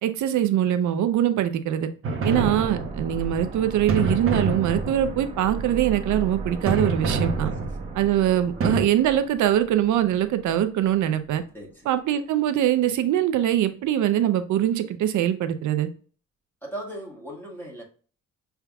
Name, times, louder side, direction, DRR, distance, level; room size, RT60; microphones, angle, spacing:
voice 1, 0.0-1.9 2.2-7.5 7.9-11.4 11.9-15.9, right 11 dB, 75° right, 0.7 m, -23 dB
sound 1, 2.0-3.2 3.9-5.3 6.7-8.0 8.6-8.8, right 3 dB, 45° right, 0.9 m, -27 dB
sound 2, 2.3-11.0 11.3-11.4, right 3 dB, 20° right, 1.1 m, -36 dB
voice 2, 11.5-11.9 16.6-17.8, right 1 dB, 5° left, 1.5 m, -38 dB
5.7 x 3.5 x 2.3 m
cardioid pair, 90°, 30 cm